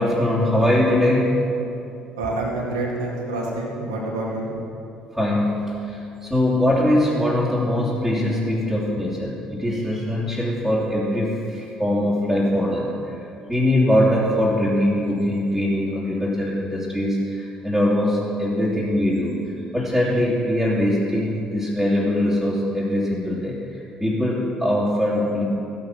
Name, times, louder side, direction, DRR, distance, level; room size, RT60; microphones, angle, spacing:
voice 1, 0.0-1.3 5.1-5.5 5.8-13.1 13.5-19.4 19.7-25.4, left 1 dB, 5° right, -8 dB, 2.8 m, -22 dB
voice 2, 2.2-4.5, right 2 dB, 75° right, -3 dB, 2.3 m, -27 dB
14.5 x 8.9 x 6.0 m, 2.7 s
figure-of-eight pair, 50°, 3 cm